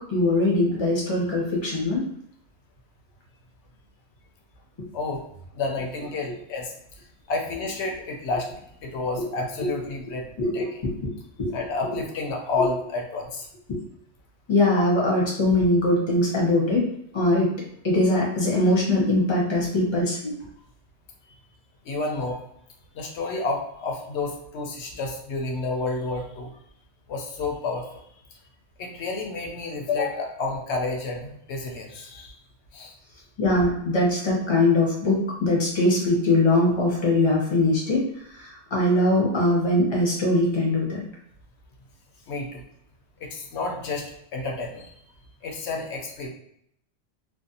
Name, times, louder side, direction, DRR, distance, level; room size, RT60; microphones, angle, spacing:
voice 1, 0.0-2.1 9.2-9.3 9.6-9.7 10.4-10.5 11.4-11.6 11.9-12.0 12.6-12.7 13.7-13.8 14.5-16.9 17.1-17.5 17.8-20.4 33.4-41.0, left 2 dB, 30° left, -4 dB, 0.6 m, -22 dB
voice 2, 5.5-10.7 11.5-13.5 21.3-21.4 21.8-22.4 22.9-26.5 27.1-28.0 28.8-32.4 32.7-32.9 42.3-42.6 43.2-44.1 44.3-45.0 45.4-46.3, left 3 dB, 70° left, 1 dB, 0.8 m, -30 dB
2.5 x 2.1 x 2.6 m, 0.71 s
omnidirectional pair, 1.2 m